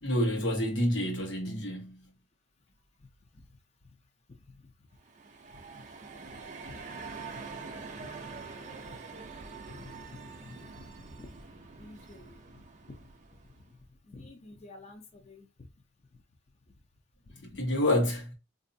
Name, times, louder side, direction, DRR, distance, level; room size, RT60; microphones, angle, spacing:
voice 1, 0.0-2.1 17.4-18.3, left 1 dB, 85° left, 1.1 m, -28 dB
sound 1, 5.0-13.7, right 4 dB, 40° right, 0.5 m, -45 dB
voice 2, 9.7-10.8 11.2-11.3 11.8-13.0 14.1-15.5 17.3-17.6, left 2 dB, 35° left, 0.5 m, -50 dB
4.0 x 2.6 x 2.6 m
head